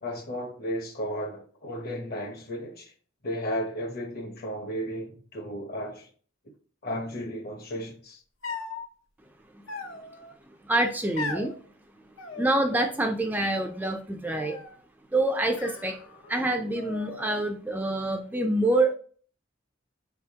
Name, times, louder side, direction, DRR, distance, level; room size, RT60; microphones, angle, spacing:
voice 1, 0.0-2.9 3.2-6.1 6.8-8.2, equal, 50° left, 1.0 m, -34 dB
sound 1, 8.4-8.9 9.7-10.3 11.2-11.5 12.2-13.0 13.3-13.8 14.3-14.8 15.5-16.4 16.7-17.5, left 4 dB, 85° left, 0.8 m, -39 dB
voice 2, 10.4-11.5 12.4-14.6 15.1-16.0 16.3-19.0, right 2 dB, 10° right, 0.4 m, -26 dB
4.8 x 3.4 x 2.8 m
head